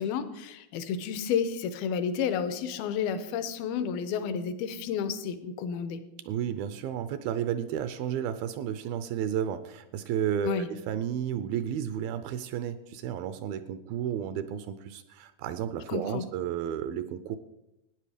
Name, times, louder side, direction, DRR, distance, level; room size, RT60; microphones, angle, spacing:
voice 1, 0.0-6.0 10.4-10.7 15.9-16.2, left 7 dB, 75° left, 11 dB, 2.6 m, -31 dB
voice 2, 6.2-17.4, right 9 dB, 80° right, 12 dB, 2.3 m, -32 dB
14.5 x 10.0 x 5.0 m, 0.89 s
omnidirectional pair, 4.5 m